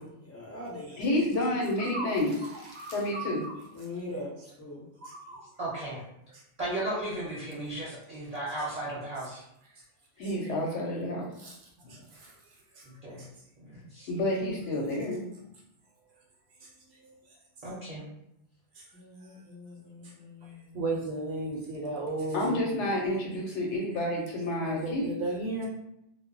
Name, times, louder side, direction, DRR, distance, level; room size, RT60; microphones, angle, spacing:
voice 1, 0.0-1.0 3.7-4.3 4.6-4.8 18.9-20.8 21.7-21.9, left 2 dB, 20° left, -5 dB, 0.4 m, -42 dB
voice 2, 1.0-2.4 2.9-3.4 10.2-11.3 14.1-15.2 22.3-25.1, left 1 dB, 80° left, -2 dB, 0.9 m, -29 dB
voice 3, 2.8-3.5 5.0-5.4 11.4-11.6 20.7-22.6 24.6-25.7, right 2 dB, 70° right, -3 dB, 0.8 m, -34 dB
voice 4, 5.6-6.0 6.6-9.4 12.8-13.2 13.6-14.1 17.6-18.0, right 1 dB, 40° right, -8 dB, 0.7 m, -35 dB
2.1 x 2.0 x 3.7 m, 0.80 s
omnidirectional pair, 1.2 m